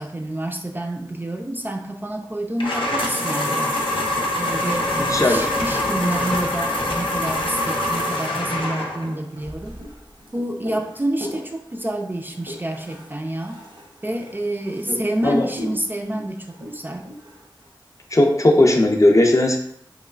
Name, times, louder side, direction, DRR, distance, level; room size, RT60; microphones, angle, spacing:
voice 1, 0.0-3.8 4.3-9.7 10.3-13.6 14.0-17.1, right 1 dB, 25° right, 2 dB, 0.3 m, -28 dB
sound 1, 2.6-9.1, left 1 dB, 85° left, 0.6 m, -24 dB
voice 2, 4.9-5.5 14.9-15.5 18.1-19.6, left 1 dB, 40° left, 2 dB, 0.5 m, -17 dB
sound 2, 8.5-17.7, equal, 75° right, 0.8 m, -40 dB
3.0 x 3.0 x 2.3 m, 0.71 s
wide cardioid pair, 55°, 9 cm